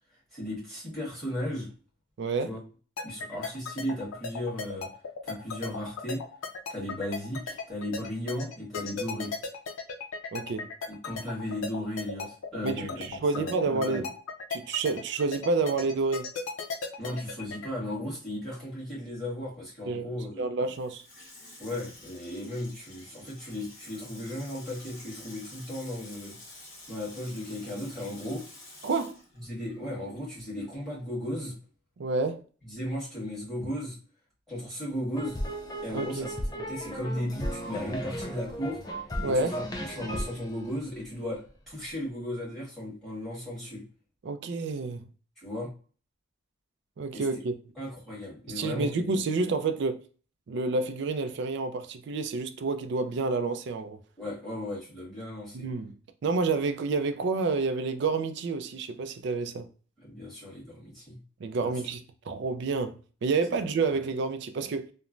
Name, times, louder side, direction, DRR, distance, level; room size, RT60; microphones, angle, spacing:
voice 1, 0.3-1.7 2.4-2.6 3.0-4.9 5.2-6.2 6.7-9.3 10.9-14.1 17.0-20.5 21.6-26.4 26.9-28.4 29.4-31.5 32.6-34.0 34.5-35.4 35.8-38.8 39.2-43.8 45.4-45.7 47.1-47.2 47.8-49.0 54.2-55.6 60.0-61.2 61.6-61.7, left 1 dB, ahead, 1.4 m, -36 dB
voice 2, 2.2-2.6 10.3-10.7 12.6-14.0 14.5-16.3 19.9-20.1 20.4-21.0 28.8-29.2 32.0-32.4 35.9-36.3 39.2-39.5 44.2-45.0 47.0-47.5 48.5-50.0 50.5-54.0 55.5-55.9 56.2-59.7 61.4-64.9, right 3 dB, 55° right, 0.3 m, -29 dB
sound 1, 3.0-17.7, left 4 dB, 85° left, 0.5 m, -36 dB
Water tap faucet / Sink (filling or washing), 20.6-30.3 30.6-30.7, left 2 dB, 45° left, 1.0 m, -50 dB
sound 2, 35.1-41.5, equal, 20° left, 0.4 m, -35 dB
3.0 x 2.1 x 2.4 m
head